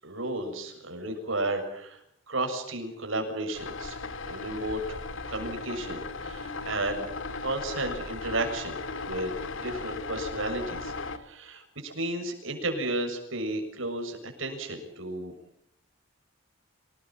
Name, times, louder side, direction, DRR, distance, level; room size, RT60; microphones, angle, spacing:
voice 1, 0.0-4.0 4.2-7.1 7.4-10.9 11.2-15.3, right 2 dB, 80° right, 4 dB, 6.9 m, -33 dB
sound 1, 3.5-11.2, left 3 dB, 75° left, 2.3 m, -37 dB
27.0 x 19.5 x 8.9 m, 0.72 s
head